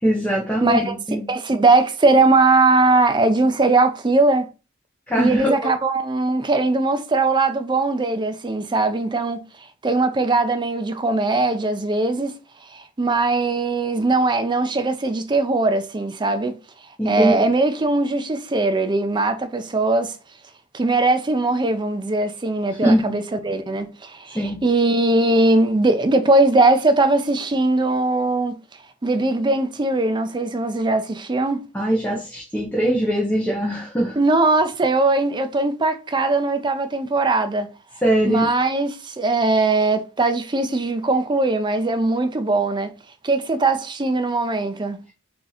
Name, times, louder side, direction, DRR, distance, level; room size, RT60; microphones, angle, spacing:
voice 1, 0.0-1.3 5.1-5.5 17.0-17.5 22.7-23.2 24.3-24.6 31.7-34.2 38.0-38.5, right 1 dB, 5° left, 0.9 m, -21 dB
voice 2, 0.6-0.9 1.3-4.5 5.2-9.4 9.8-12.3 12.7-16.6 17.0-20.1 20.7-28.6 29.0-31.6 34.2-37.7 38.3-42.9 43.2-45.0, right 2 dB, 25° right, 0.5 m, -20 dB
3.7 x 2.9 x 4.0 m
head